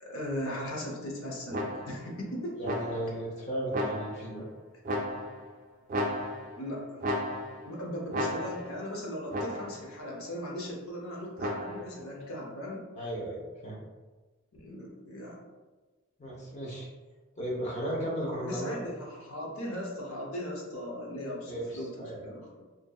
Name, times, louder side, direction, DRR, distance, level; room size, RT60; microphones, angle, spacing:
voice 1, 0.0-2.6 6.6-7.0 7.6-12.8 14.6-15.4 18.4-22.6, equal, 70° left, -2 dB, 0.7 m, -38 dB
sound 1, 1.5-2.1 2.6-3.2 3.7-4.4 4.9-5.5 5.9-6.7 7.0-7.7 8.1-8.8 9.3-9.9 11.4-12.0, equal, 35° right, 0.3 m, -34 dB
voice 2, 2.6-4.5 13.0-13.8 16.2-16.9 17.4-18.8 21.5-22.3, right 1 dB, 30° left, -4 dB, 0.7 m, -35 dB
2.7 x 2.6 x 2.3 m, 1.2 s
head